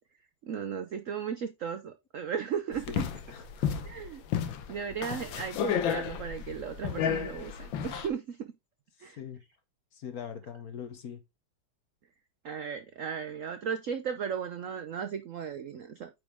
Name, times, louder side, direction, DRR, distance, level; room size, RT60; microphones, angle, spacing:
voice 1, 0.4-3.1 3.9-4.2 4.7-8.4 9.0-9.2 12.4-16.1, right 7 dB, 70° right, 0.7 m, -36 dB
sound 1, 2.7-8.1, left 8 dB, 75° left, 1.7 m, -32 dB
voice 2, 2.9-3.7 9.2-9.4 9.9-11.2, left 8 dB, 55° left, 1.3 m, -42 dB
8.9 x 4.9 x 3.5 m
omnidirectional pair, 2.2 m